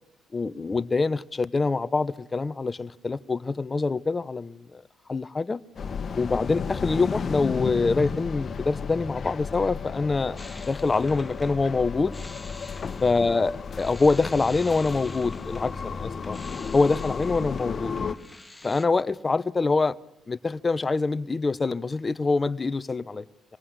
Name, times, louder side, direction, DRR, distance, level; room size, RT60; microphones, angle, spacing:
voice 1, 0.3-4.8 5.1-5.6 6.1-12.2 13.0-16.4 16.7-17.9 18.6-19.9 20.3-23.2, left 3 dB, 25° left, 16 dB, 1.1 m, -25 dB
sound 1, 5.8-18.2, left 5 dB, 45° left, 1.6 m, -33 dB
sound 2, 10.4-18.9, left 2 dB, 10° left, 1.7 m, -46 dB
26.5 x 19.0 x 8.3 m, 0.81 s
cardioid pair, 80°, 0 cm